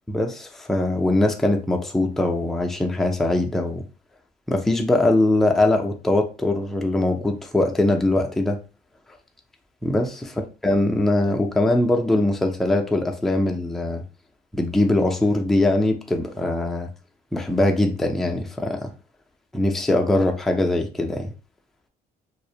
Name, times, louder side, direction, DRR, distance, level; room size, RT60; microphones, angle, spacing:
voice 1, 0.1-3.8 4.5-8.6 9.8-10.3 10.6-14.0 14.5-16.9 17.3-18.9 19.5-21.3, left 1 dB, ahead, 0.3 m, -21 dB
2.3 x 2.0 x 2.7 m
cardioid pair, 110°, 17 cm